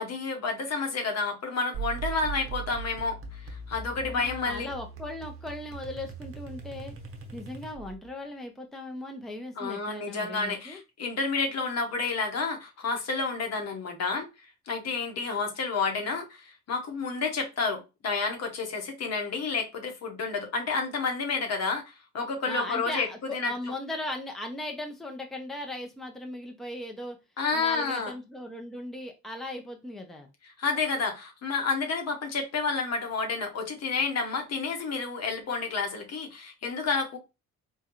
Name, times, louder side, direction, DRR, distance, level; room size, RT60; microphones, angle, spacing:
voice 1, 0.0-3.2 3.7-4.7 9.6-14.3 14.7-23.5 27.4-28.1 30.6-37.2, left 4 dB, 55° left, 1.0 m, -30 dB
sound 1, 1.7-8.1, right 4 dB, 45° right, 0.9 m, -40 dB
voice 2, 4.1-6.9 7.3-10.8 22.5-27.2 27.5-30.3, left 1 dB, ahead, 0.7 m, -38 dB
3.7 x 2.3 x 2.9 m
cardioid pair, 90°, 30 cm